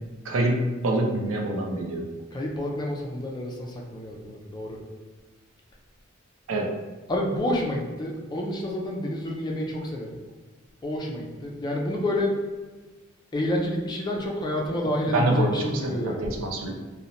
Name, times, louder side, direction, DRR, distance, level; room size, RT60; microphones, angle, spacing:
voice 1, 0.2-2.1 6.5-6.8 15.1-16.7, right 1 dB, 80° right, 1 dB, 0.5 m, -26 dB
voice 2, 2.3-4.8 7.1-10.2 10.8-12.4 13.3-16.2, left 1 dB, 20° left, -1 dB, 0.4 m, -29 dB
2.9 x 2.1 x 2.6 m, 1.3 s
head